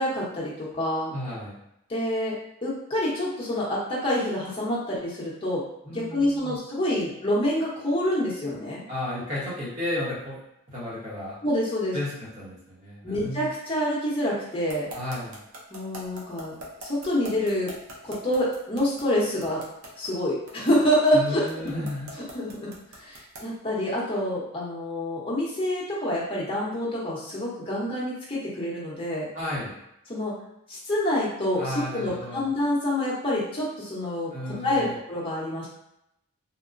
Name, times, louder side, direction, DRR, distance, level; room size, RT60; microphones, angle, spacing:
voice 1, 0.0-1.1 1.9-2.3 2.6-5.6 5.9-8.8 11.4-12.0 13.0-14.9 15.7-17.7 18.0-19.6 20.0-21.9 22.3-29.3 30.1-30.3 30.7-34.3 34.6-35.7, left 1 dB, 25° left, -7 dB, 0.7 m, -27 dB
voice 2, 1.1-1.6 5.8-6.6 8.9-10.4 10.7-11.4 11.9-13.5 14.9-15.4 21.1-22.1 29.3-29.8 31.6-32.4 34.3-34.9, left 1 dB, 35° right, -7 dB, 0.9 m, -33 dB
sound 1, 14.7-23.6, right 1 dB, 80° right, 0.6 m, -41 dB
2.8 x 2.0 x 2.4 m, 0.81 s
head